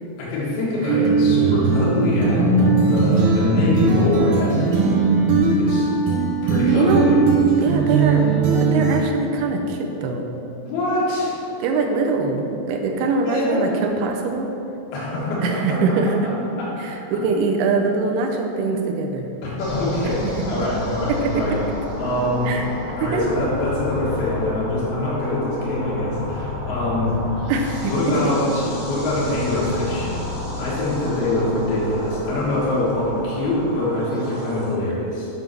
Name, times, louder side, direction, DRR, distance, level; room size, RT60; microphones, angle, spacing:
voice 1, 0.2-4.5 5.6-5.9 6.4-7.2 10.6-11.3 12.9-13.7 14.9-15.8 16.6-16.7 19.4-21.6 22.0-22.5 23.0-27.1 27.8-30.1 30.6-35.3, left 1 dB, 70° left, -7 dB, 3.3 m, -24 dB
sound 1, 0.9-9.0, right 4 dB, 65° right, 2.4 m, -18 dB
voice 2, 6.7-7.1 7.6-8.3 8.6-10.3 11.6-14.5 15.4-16.3 16.8-19.3 20.2-20.5 21.2-21.6 22.5-23.3 27.5-28.4, right 4 dB, 80° right, 2 dB, 2.5 m, -23 dB
sound 2, 19.6-34.7, left 2 dB, 55° left, 3.0 m, -31 dB
9.2 x 3.9 x 5.9 m, 3.0 s
omnidirectional pair, 4.7 m